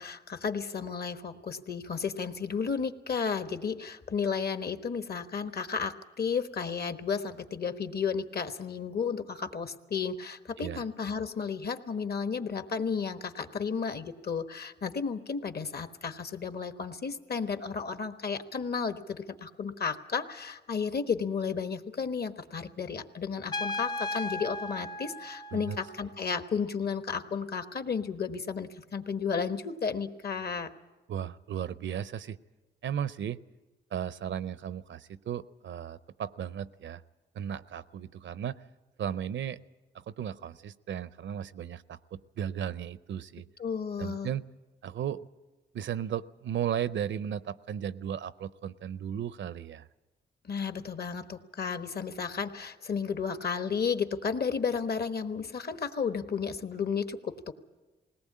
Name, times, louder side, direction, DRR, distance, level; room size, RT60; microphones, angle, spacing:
voice 1, 0.0-30.7 43.6-44.3 50.4-57.5, left 6 dB, 55° left, 9 dB, 1.3 m, -33 dB
Trumpet, 23.5-26.2, left 2 dB, 20° left, 0.6 m, -36 dB
voice 2, 31.1-32.4 32.8-33.4 33.9-37.0 37.3-38.6 39.0-39.6 39.9-43.5 44.0-44.5 44.8-45.3 45.7-49.9, right 9 dB, 80° right, 16 dB, 0.6 m, -35 dB
20.5 x 18.5 x 8.6 m, 1.2 s
cardioid pair, 75°, 19 cm